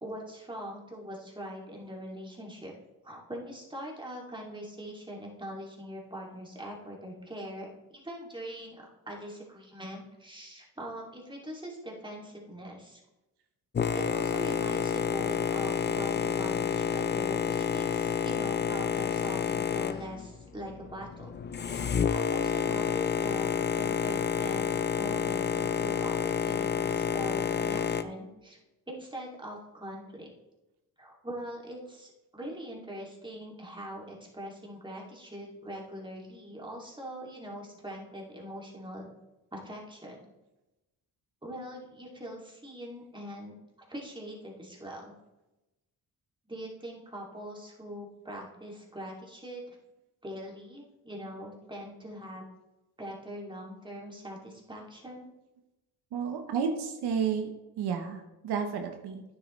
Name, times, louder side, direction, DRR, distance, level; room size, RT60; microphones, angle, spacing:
voice 1, 0.0-2.7 3.0-13.0 13.9-21.3 21.6-28.6 28.9-30.3 31.0-39.1 39.5-40.3 41.4-43.5 43.9-45.1 46.5-49.8 50.2-52.4 53.0-55.3, equal, 10° right, -2 dB, 2.6 m, -42 dB
Boat Water vehicle, 13.7-28.0, left 7 dB, 25° left, 0.5 m, -29 dB
voice 2, 56.1-57.5 57.8-59.2, right 6 dB, 80° right, 5 dB, 1.0 m, -31 dB
9.3 x 7.7 x 3.2 m, 1.0 s
cardioid pair, 75°, 39 cm